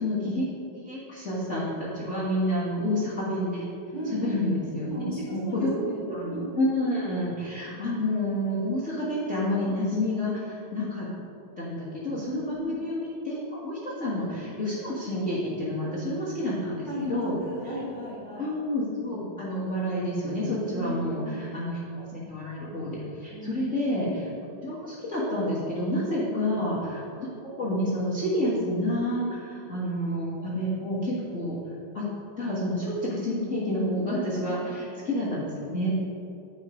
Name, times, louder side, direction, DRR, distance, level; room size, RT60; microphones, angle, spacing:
voice 1, 0.0-0.5 0.7-3.7 4.1-5.0 5.3-5.8 6.1-11.1 11.6-17.3 17.6-17.7 18.3-31.6 31.9-32.0 32.4-35.9, left 1 dB, 80° left, -9 dB, 0.6 m, -29 dB
voice 2, 4.8-6.5 12.3-12.7 15.8-15.9 16.4-16.5 16.8-18.5 20.7-21.4 23.3-23.5 34.4-34.6, equal, 40° right, -8 dB, 1.4 m, -35 dB
9.8 x 5.2 x 5.1 m, 2.7 s
omnidirectional pair, 4.4 m